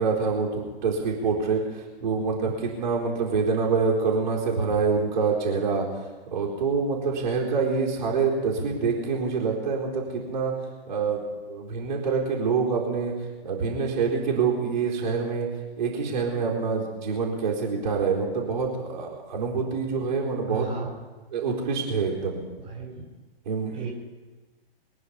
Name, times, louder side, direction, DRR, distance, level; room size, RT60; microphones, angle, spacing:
voice 1, 0.0-1.6 2.0-5.9 6.3-10.5 10.9-11.2 11.5-13.1 13.4-15.5 15.8-20.7 21.3-22.4 23.5-23.9, right 5 dB, 50° right, -3 dB, 4.1 m, -26 dB
voice 2, 20.5-20.9 22.6-23.0 23.7-23.9, right 4 dB, 15° right, -2 dB, 4.6 m, -34 dB
23.5 x 9.7 x 5.7 m, 1.3 s
figure-of-eight pair, 120°, 30 cm